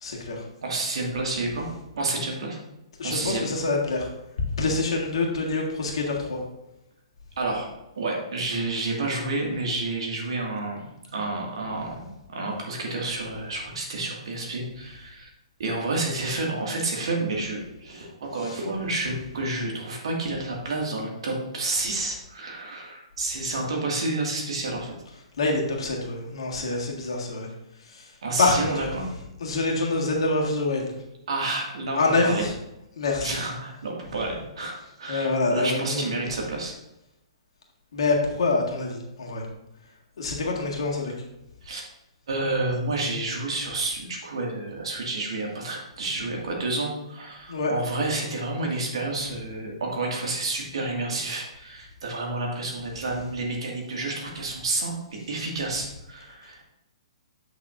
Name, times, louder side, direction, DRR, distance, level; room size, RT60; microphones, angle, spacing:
voice 1, 0.0-0.4 3.0-4.1 4.6-6.4 18.4-18.5 25.4-27.5 27.8-28.1 28.4-28.9 29.4-30.9 32.0-32.5 33.0-33.4 35.1-36.3 37.9-39.5 40.2-41.1 47.5-47.7, left 3 dB, 65° left, -1 dB, 1.8 m, -26 dB
voice 2, 0.6-1.7 2.0-2.6 3.0-3.5 7.4-7.7 8.0-10.8 11.1-15.3 15.6-24.9 28.2-29.0 31.3-32.4 33.2-36.7 41.6-41.8 42.3-54.9 55.3-56.6, right 2 dB, 65° right, -1 dB, 2.0 m, -30 dB
8.5 x 6.1 x 2.6 m, 0.89 s
figure-of-eight pair, 125°, 3 cm